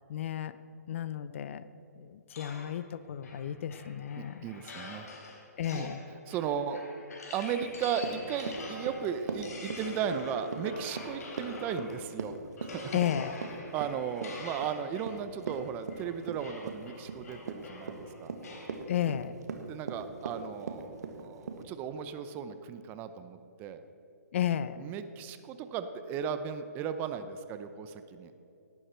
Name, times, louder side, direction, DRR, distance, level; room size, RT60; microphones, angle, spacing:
voice 1, 0.1-0.5 0.9-1.6 2.0-4.4 5.6-6.0 12.9-13.4 18.9-19.3 24.3-24.8, left 10 dB, 50° left, 14 dB, 0.6 m, -33 dB
sound 1, 2.3-12.1 12.6-18.8, left 2 dB, 65° left, 4.0 m, -46 dB
voice 2, 4.2-5.1 5.7-5.9 6.3-6.8 7.3-12.3 12.6-13.0 13.7-18.3 19.7-23.8 24.8-28.3, right 7 dB, 20° right, 10 dB, 0.6 m, -36 dB
Run, 7.5-21.6, right 4 dB, 75° right, 1.8 m, -40 dB
18.0 x 12.0 x 4.5 m, 2.8 s
hypercardioid pair, 150°, 9 cm